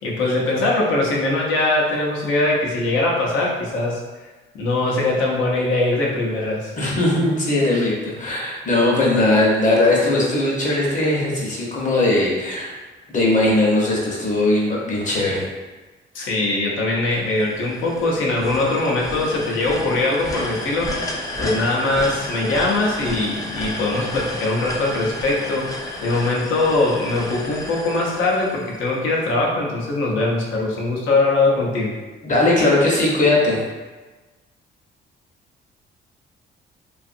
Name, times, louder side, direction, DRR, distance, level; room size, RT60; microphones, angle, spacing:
voice 1, 0.0-4.0 4.5-6.7 16.1-20.9 21.4-31.9, left 2 dB, 80° left, -3 dB, 0.7 m, -21 dB
voice 2, 6.8-12.7 13.1-15.5 32.2-33.6, left 2 dB, 40° left, -4 dB, 0.8 m, -19 dB
sound 1, 17.1-29.2, left 1 dB, 15° left, 0.4 m, -32 dB
2.6 x 2.4 x 2.5 m, 1.2 s
cardioid pair, 90°, 20 cm